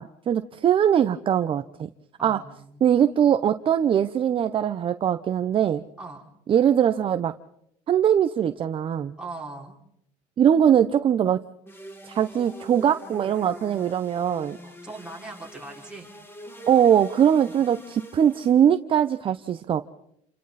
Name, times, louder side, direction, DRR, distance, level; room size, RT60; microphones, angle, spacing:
voice 1, 0.0-1.9 2.2-2.4 2.8-5.8 6.5-7.3 7.9-9.1 10.4-11.4 12.1-14.6 16.7-19.9, right 9 dB, 35° right, 10 dB, 0.8 m, -21 dB
voice 2, 2.2-2.9 6.0-6.2 9.2-9.8 14.6-16.1, right 3 dB, 5° right, -3 dB, 5.6 m, -40 dB
sound 1, 11.7-18.8, equal, 15° left, 2.8 m, -44 dB
29.0 x 27.0 x 4.2 m, 0.75 s
cardioid pair, 125°, 16 cm